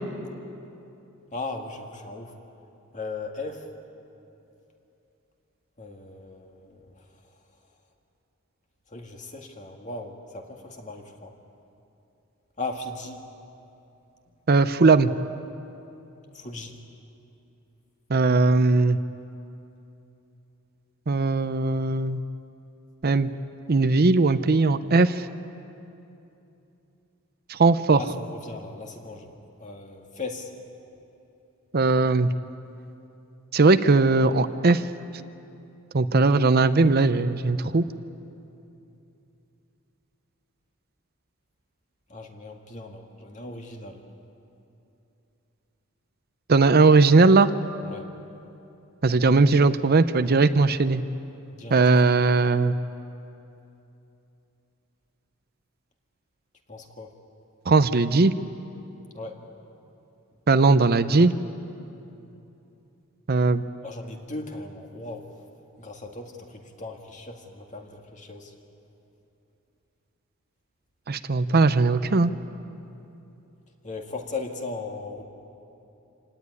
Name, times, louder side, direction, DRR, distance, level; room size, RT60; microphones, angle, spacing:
voice 1, 1.3-2.4 2.9-3.7 5.8-7.4 8.9-11.3 12.6-13.2 16.3-16.8 28.0-29.3 29.6-30.5 42.1-44.0 47.8-48.1 51.5-51.8 56.7-57.1 59.1-59.4 63.8-65.4 65.8-68.5 73.8-75.2, left 3 dB, 35° left, 3 dB, 2.2 m, -37 dB
voice 2, 14.5-15.1 18.1-19.0 21.1-22.2 23.0-23.3 23.7-25.2 27.5-28.0 31.7-32.3 33.5-34.8 35.9-37.8 46.5-47.5 49.0-51.0 51.7-52.7 57.7-58.3 60.5-61.3 63.3-63.6 71.1-72.3, right 3 dB, 50° right, 11 dB, 0.7 m, -19 dB
27.0 x 18.0 x 9.7 m, 2.9 s
head